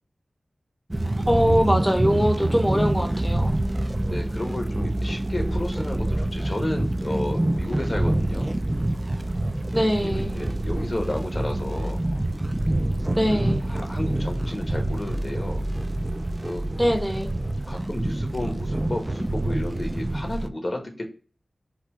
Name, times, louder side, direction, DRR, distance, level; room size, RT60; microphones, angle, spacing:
sound 1, 0.9-20.5, right 1 dB, 25° right, 0.3 m, -26 dB
voice 1, 1.3-3.5 9.7-10.4 13.1-13.7 16.8-17.3, equal, ahead, 3 dB, 0.7 m, -22 dB
voice 2, 4.0-8.5 10.0-12.0 13.3-15.6 16.4-16.6 17.7-21.0, left 1 dB, 45° left, 2 dB, 1.2 m, -32 dB
4.2 x 2.3 x 4.6 m, 0.38 s
wide cardioid pair, 60°, 0 cm